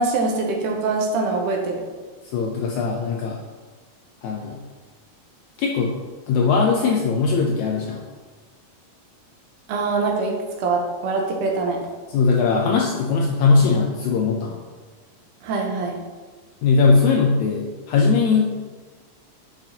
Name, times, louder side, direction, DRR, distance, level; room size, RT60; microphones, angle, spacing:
voice 1, 0.0-1.8 9.7-11.8 15.4-16.0, right 3 dB, 75° right, 0 dB, 2.2 m, -23 dB
voice 2, 2.3-3.4 4.2-4.6 5.6-5.9 6.3-8.0 12.1-14.6 16.6-18.5, left 4 dB, 80° left, 0 dB, 1.7 m, -20 dB
8.7 x 5.9 x 2.8 m, 1.4 s
omnidirectional pair, 3.9 m